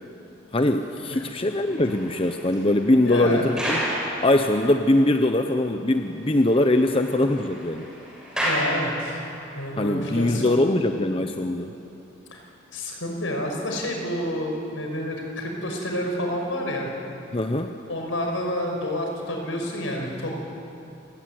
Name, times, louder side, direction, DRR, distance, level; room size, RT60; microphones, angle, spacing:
voice 1, 0.5-3.8 4.2-7.9 9.8-11.7 17.3-17.8, left 1 dB, 25° left, 6 dB, 0.9 m, -22 dB
sound 1, 1.4-4.9 5.4-5.5 5.9-6.0 6.3-9.5, equal, 5° right, 6.9 m, -32 dB
voice 2, 3.0-3.4 8.4-9.2 9.5-10.6 12.3-12.4 12.7-16.9 17.9-20.4, equal, 75° left, 1 dB, 5.6 m, -29 dB
28.0 x 18.0 x 9.6 m, 2.8 s
head